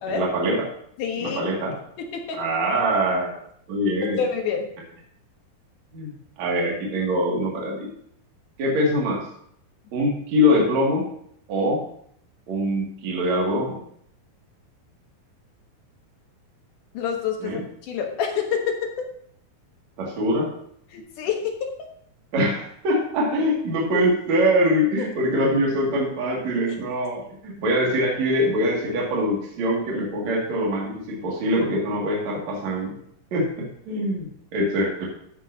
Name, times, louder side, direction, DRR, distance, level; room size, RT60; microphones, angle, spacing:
voice 1, 0.1-0.6 1.2-1.7 2.4-3.3 3.7-4.2 5.9-6.1 6.4-7.9 8.6-9.2 9.9-11.1 11.5-11.8 12.5-13.8 17.4-17.6 20.0-20.5 22.3-32.9 33.3-35.1, equal, 50° right, -3 dB, 3.2 m, -23 dB
voice 2, 1.0-1.4 2.0-2.4 4.2-4.7 16.9-18.8 20.9-21.7 25.0-25.1, left 7 dB, 65° left, 3 dB, 2.5 m, -27 dB
13.5 x 8.9 x 2.8 m, 0.68 s
omnidirectional pair, 4.4 m